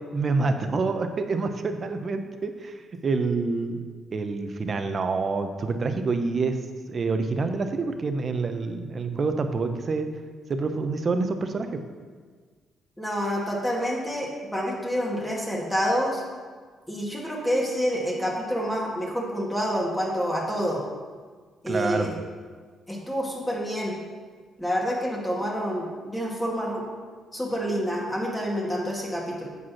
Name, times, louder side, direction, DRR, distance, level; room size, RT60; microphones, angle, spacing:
voice 1, 0.1-3.8 4.1-6.6 6.9-10.1 10.5-11.8 21.7-22.1, right 3 dB, 40° right, 7 dB, 0.8 m, -27 dB
voice 2, 13.0-16.2 16.9-20.8 21.6-22.1 22.9-24.0 24.6-26.8 27.3-29.5, equal, 10° left, -3 dB, 2.0 m, -28 dB
8.0 x 5.1 x 5.8 m, 1.5 s
cardioid pair, 90°, 0 cm